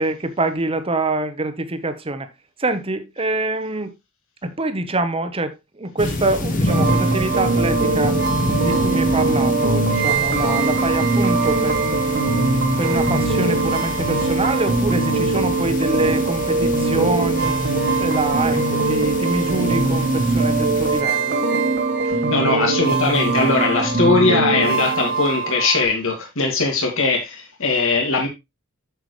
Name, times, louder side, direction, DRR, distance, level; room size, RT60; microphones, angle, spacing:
voice 1, 0.0-2.3 2.6-3.9 4.4-8.2 8.6-12.2 12.8-17.6 18.0-21.4, right 2 dB, 25° right, 1.0 m, -25 dB
sound 1, 6.0-21.0, left 1 dB, 40° left, 1.7 m, -29 dB
sound 2, 6.7-25.9, right 3 dB, 50° right, 1.4 m, -21 dB
voice 2, 22.0-28.3, left 3 dB, 65° left, 2.3 m, -20 dB
8.0 x 7.1 x 3.2 m
head